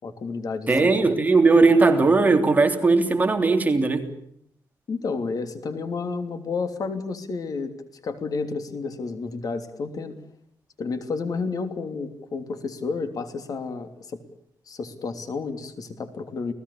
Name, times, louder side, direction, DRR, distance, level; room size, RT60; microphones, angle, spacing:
voice 1, 0.0-1.1 4.9-7.7 8.0-10.2 10.8-14.2 14.7-16.5, left 4 dB, 55° left, 8 dB, 3.1 m, -31 dB
voice 2, 0.7-4.1, right 3 dB, 20° right, 5 dB, 3.2 m, -18 dB
30.0 x 19.0 x 8.6 m, 0.71 s
wide cardioid pair, 130°, 7 cm